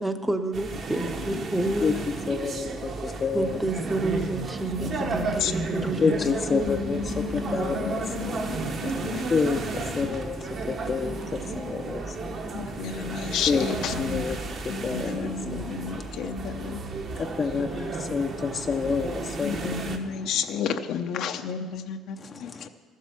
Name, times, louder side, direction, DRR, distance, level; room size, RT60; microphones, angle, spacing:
voice 1, 0.0-2.0 2.3-2.5 3.3-6.1, right 2 dB, 10° right, 0.8 m, -29 dB
sound 1, 0.5-20.0, right 3 dB, 45° right, 1.2 m, -33 dB
voice 2, 1.3-1.8 4.9-5.5 6.0-9.3 9.5-10.2 12.5-14.4 14.7-16.8 19.4-22.7, left 7 dB, 65° left, 0.7 m, -32 dB
voice 3, 2.3-3.5 4.8-4.9 6.0-7.0 7.5-8.0 9.3-9.6 10.0-10.4 10.7-12.3 13.5-13.6 14.0-14.3 14.8-15.3 17.3-19.5 22.6-22.7, left 5 dB, 30° left, 0.6 m, -27 dB
13.5 x 7.4 x 7.1 m
cardioid pair, 115°, 0 cm